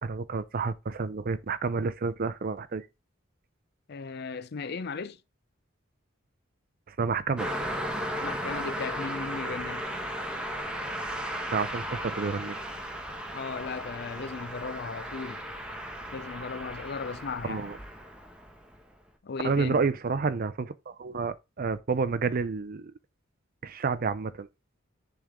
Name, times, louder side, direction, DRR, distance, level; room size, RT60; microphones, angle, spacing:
voice 1, 0.0-2.9 6.9-7.5 11.5-12.6 17.4-17.8 19.4-22.9 23.6-24.5, right 4 dB, 45° right, 0.5 m, -30 dB
voice 2, 3.9-5.2 8.2-9.8 13.3-15.4 16.1-17.6 19.2-19.8, left 4 dB, 55° left, 0.5 m, -36 dB
Car passing by, 7.4-18.8, equal, 5° right, 1.0 m, -36 dB
10.0 x 3.6 x 3.6 m
head